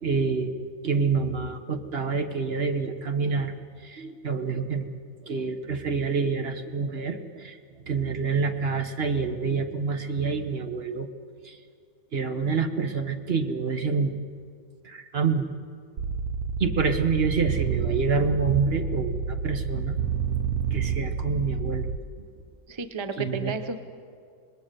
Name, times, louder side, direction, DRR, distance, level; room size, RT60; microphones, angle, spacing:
voice 1, 0.0-3.5 3.8-4.9 5.3-7.6 7.9-11.1 11.4-11.6 12.1-14.2 14.8-15.4 16.6-20.0 20.7-21.9 23.2-23.5, right 5 dB, 45° right, 7 dB, 1.3 m, -27 dB
sound 1, 16.0-22.0, right 6 dB, 75° right, 1.3 m, -29 dB
voice 2, 22.7-23.8, right 4 dB, 25° right, 9 dB, 0.7 m, -32 dB
26.0 x 20.0 x 6.7 m, 2.2 s
omnidirectional pair, 1.6 m